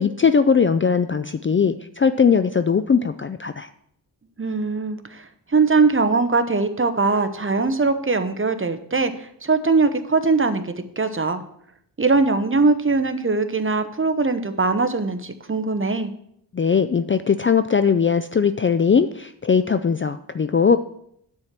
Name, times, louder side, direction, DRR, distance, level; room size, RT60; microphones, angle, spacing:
voice 1, 0.0-3.7 16.5-20.8, left 6 dB, 30° left, 10 dB, 0.4 m, -19 dB
voice 2, 4.4-11.4 12.0-16.1, right 3 dB, 30° right, 9 dB, 0.9 m, -21 dB
9.6 x 4.5 x 7.4 m, 0.71 s
cardioid pair, 65°, 43 cm